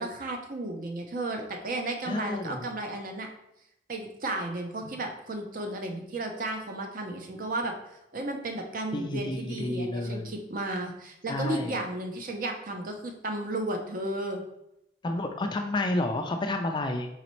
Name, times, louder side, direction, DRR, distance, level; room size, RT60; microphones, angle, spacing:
voice 1, 0.0-3.3 3.9-14.4, right 1 dB, 45° right, 4 dB, 0.6 m, -34 dB
voice 2, 2.1-2.7 4.8-4.9 8.9-10.3 11.3-11.8 15.0-17.1, left 1 dB, 25° left, 5 dB, 0.3 m, -30 dB
4.1 x 4.0 x 3.0 m, 0.84 s
head